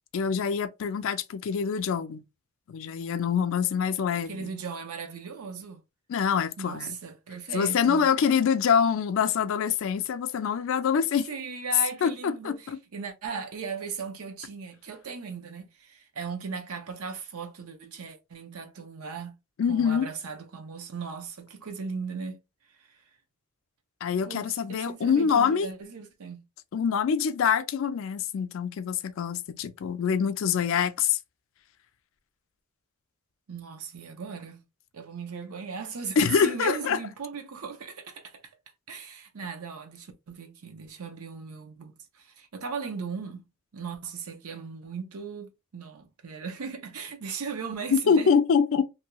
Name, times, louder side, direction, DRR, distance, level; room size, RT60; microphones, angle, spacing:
voice 1, 0.1-2.2 2.7-4.5 6.1-7.0 7.5-11.3 12.0-12.8 19.6-20.1 24.0-25.7 26.7-31.2 36.2-37.0 47.9-48.8, left 6 dB, 65° left, 0.4 m, -25 dB
voice 2, 4.3-5.8 6.6-8.1 11.3-19.4 19.7-22.4 22.8-22.9 24.2-26.4 33.5-34.7 34.9-38.4 38.9-43.4 43.7-48.4, right 5 dB, 90° right, 0.6 m, -37 dB
2.6 x 2.3 x 2.9 m
head